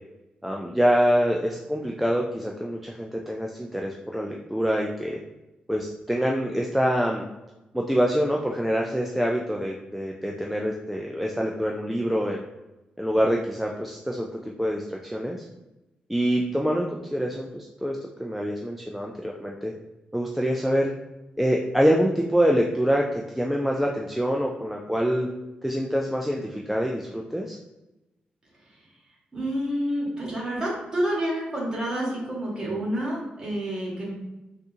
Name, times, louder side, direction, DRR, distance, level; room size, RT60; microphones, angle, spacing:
voice 1, 0.4-5.2 5.7-7.3 7.7-12.4 13.0-15.5 16.1-19.7 20.1-20.9 21.4-25.3 25.6-27.6, equal, 5° right, -1 dB, 0.3 m, -25 dB
voice 2, 29.3-34.1, right 1 dB, 25° right, -4 dB, 1.4 m, -28 dB
3.9 x 2.4 x 2.7 m, 1.0 s
cardioid pair, 110°, 3 cm